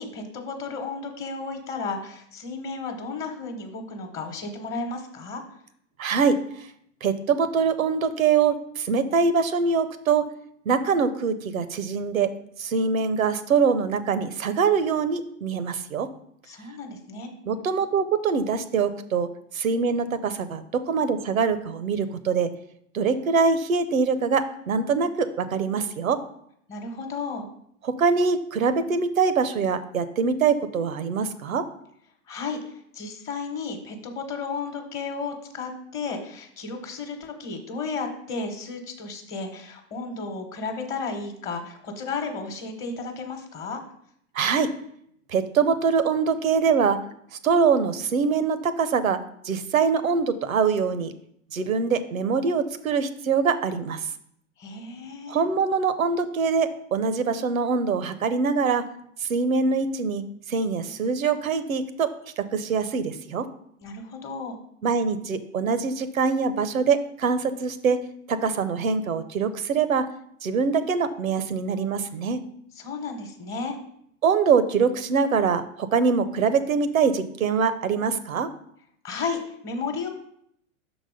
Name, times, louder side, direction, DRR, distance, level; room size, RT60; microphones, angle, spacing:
voice 1, 0.0-5.4 16.5-17.3 26.7-27.4 32.3-43.8 54.6-55.4 63.8-64.6 72.8-73.8 79.0-80.1, left 4 dB, 30° left, 4 dB, 1.0 m, -33 dB
voice 2, 6.0-6.7 7.0-10.2 10.7-12.3 12.6-16.1 17.5-19.3 19.5-22.5 22.9-26.2 27.8-31.6 44.3-44.7 45.3-47.0 47.4-49.2 49.4-51.1 51.5-54.1 55.3-58.8 59.2-62.1 62.4-63.4 64.8-68.0 68.3-70.0 70.4-72.4 74.2-78.5, right 5 dB, 85° right, 13 dB, 0.7 m, -23 dB
6.1 x 4.0 x 5.0 m, 0.70 s
hypercardioid pair, 105°, 40 cm